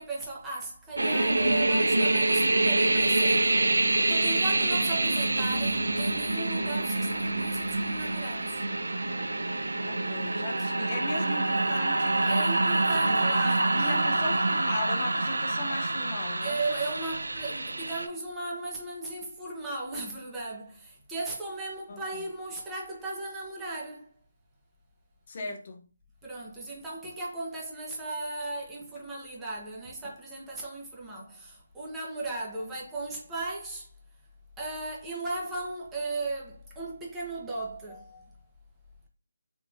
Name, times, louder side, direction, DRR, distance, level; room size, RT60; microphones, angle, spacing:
voice 1, 0.0-8.6 12.2-14.1 16.4-24.1 26.2-33.9 34.6-38.3, right 2 dB, 10° right, 0.9 m, -36 dB
sound 1, 1.0-18.1, right 2 dB, 90° right, 0.5 m, -26 dB
voice 2, 9.8-12.3 13.0-16.6 21.9-22.0 25.3-25.8, left 2 dB, 40° left, 0.6 m, -37 dB
3.6 x 2.8 x 2.5 m
figure-of-eight pair, 160°, 0 cm